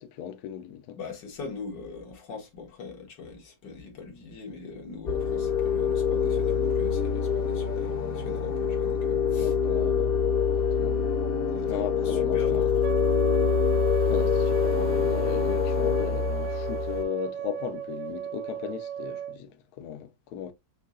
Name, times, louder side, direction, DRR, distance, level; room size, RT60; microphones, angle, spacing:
voice 1, 0.0-1.0 9.3-10.2 10.5-11.0 11.7-12.7 14.1-20.5, left 9 dB, 70° left, 1.1 m, -36 dB
voice 2, 1.0-9.5 11.5-12.7, left 4 dB, 85° left, 2.1 m, -42 dB
sound 1, 5.1-17.0, left 6 dB, 45° left, 0.9 m, -25 dB
Wind instrument woodwind instrument, 12.8-19.4, right 9 dB, 80° right, 1.4 m, -34 dB
6.5 x 2.8 x 2.6 m
omnidirectional pair, 1.8 m